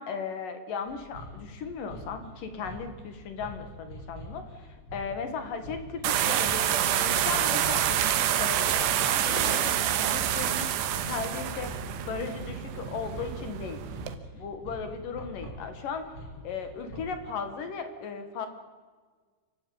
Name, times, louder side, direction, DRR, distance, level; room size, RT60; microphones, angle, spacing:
voice 1, 0.0-11.8 12.1-13.8 14.3-16.2 16.4-18.5, left 5 dB, 60° left, 8 dB, 3.0 m, -37 dB
sound 1, 0.9-17.3, equal, 30° left, 5.4 m, -44 dB
sound 2, 6.0-14.2, right 10 dB, 85° right, 3.4 m, -27 dB
28.5 x 12.5 x 8.6 m, 1.5 s
omnidirectional pair, 4.8 m